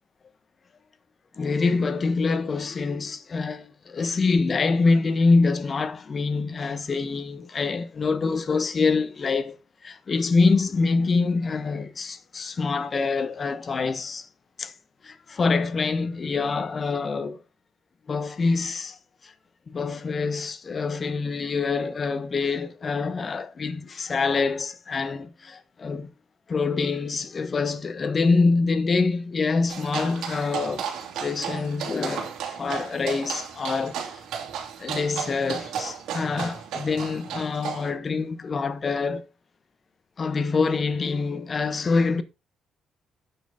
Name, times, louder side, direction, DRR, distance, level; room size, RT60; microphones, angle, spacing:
voice 1, 1.4-9.6 9.8-14.3 14.6-14.7 15.0-17.4 18.1-19.0 19.2-19.3 19.7-26.1 26.5-30.9 31.2-34.2 34.8-39.3 40.2-42.2, left 4 dB, 40° left, 1.1 m, -25 dB
sound 1, 29.7-37.9, right 8 dB, 85° right, 2.8 m, -34 dB
9.3 x 6.4 x 3.7 m
cardioid pair, 90°, 0 cm